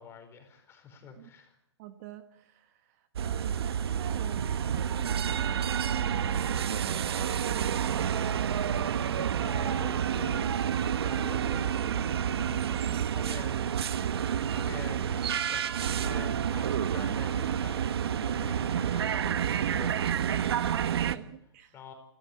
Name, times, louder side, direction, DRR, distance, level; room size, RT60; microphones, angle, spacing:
voice 1, 0.0-1.6 9.3-13.9 14.4-20.5 21.0-21.3 21.7-21.9, left 6 dB, 15° left, 6 dB, 4.6 m, -47 dB
voice 2, 1.8-8.5 20.4-21.8, right 12 dB, 35° right, 9 dB, 1.3 m, -45 dB
sound 1, 3.2-21.2, right 8 dB, 65° right, 1.1 m, -29 dB
29.0 x 13.0 x 8.4 m, 0.76 s
hypercardioid pair, 145°, 14 cm